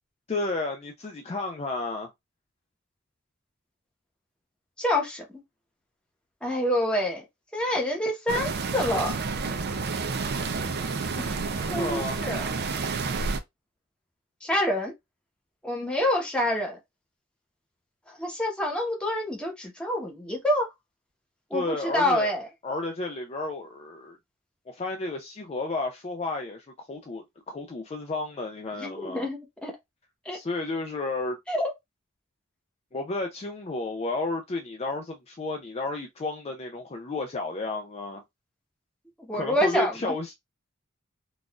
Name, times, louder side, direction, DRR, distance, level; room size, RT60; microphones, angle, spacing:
voice 1, 0.3-2.1 11.7-12.2 21.5-22.3 22.6-24.2 24.7-29.3 30.3-31.4 32.9-38.2 39.3-40.3, left 2 dB, 30° left, 0.4 m, -32 dB
voice 2, 4.8-5.4 6.4-7.2 7.5-9.1 11.2-11.4 11.7-12.5 14.4-14.9 15.6-16.8 18.1-20.7 21.5-22.5 28.8-29.7 30.2-30.4 31.5-31.7 39.2-40.2, left 1 dB, 5° left, 1.0 m, -27 dB
sound 1, 8.3-13.4, right 4 dB, 50° right, 0.5 m, -30 dB
4.0 x 2.4 x 2.3 m
head